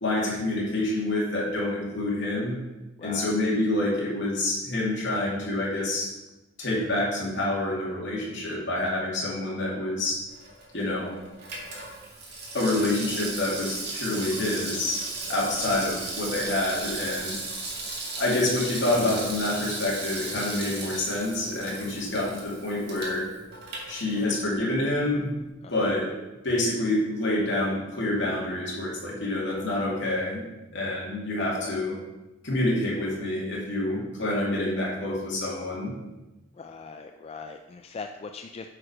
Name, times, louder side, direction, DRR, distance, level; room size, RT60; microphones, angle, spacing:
voice 1, 0.0-2.5 3.0-6.1 6.6-10.2 10.7-11.1 12.5-15.0 15.3-17.4 18.2-23.3 23.9-25.3 25.7-26.1 26.4-30.4 30.7-32.0 32.4-35.9, left 1 dB, 65° left, -4 dB, 2.5 m, -27 dB
voice 2, 3.0-3.3 15.3-15.6 25.6-25.9 31.6-31.8 36.5-38.7, left 4 dB, 30° left, 5 dB, 0.3 m, -41 dB
Water tap faucet / Sink (filling or washing), 10.3-24.6 24.9-25.0, right 3 dB, 55° right, 1.9 m, -36 dB
8.6 x 4.8 x 5.0 m, 1.0 s
head